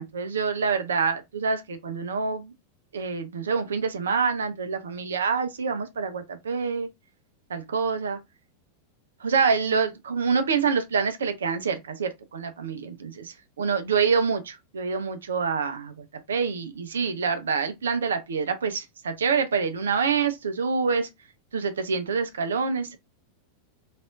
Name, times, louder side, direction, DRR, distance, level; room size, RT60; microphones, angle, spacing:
voice 1, 0.0-2.5 2.9-6.9 7.5-8.2 9.2-21.1 21.5-23.0, right 5 dB, 65° right, 0.5 m, -26 dB
3.4 x 2.5 x 2.4 m
figure-of-eight pair, 90°, 0 cm